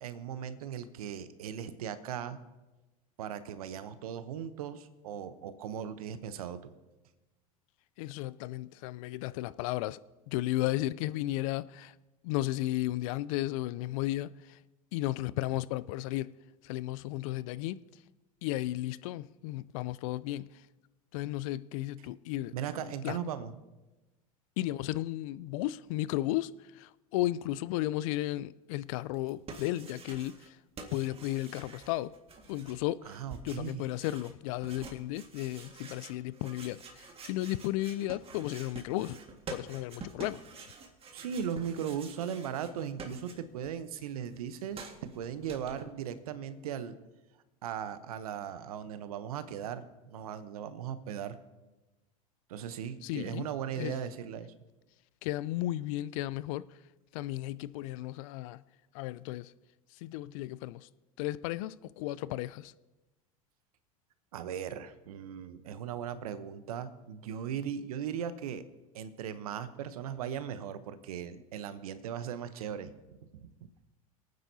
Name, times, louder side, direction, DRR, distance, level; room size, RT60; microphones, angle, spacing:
voice 1, 0.0-2.4 3.2-6.7 22.5-23.6 33.0-33.8 41.1-47.0 47.6-51.4 52.5-54.5 64.3-68.6 68.9-72.9 73.4-73.5, right 8 dB, 80° right, 0.9 m, -38 dB
voice 2, 8.0-10.0 10.3-11.9 12.2-14.6 14.9-16.3 16.6-17.8 18.4-20.5 21.1-22.5 23.0-23.2 24.6-30.6 30.9-32.1 32.5-33.2 33.4-39.2 39.5-40.4 53.0-53.5 53.8-53.9 55.2-56.7 57.1-58.6 58.9-59.5 60.0-60.9 61.2-62.7, left 16 dB, 65° left, 0.4 m, -34 dB
sound 1, 29.1-30.5 30.8-43.7 44.0-45.8, right 4 dB, 30° right, 1.8 m, -48 dB
26.5 x 9.4 x 2.8 m
hypercardioid pair, 90°, 19 cm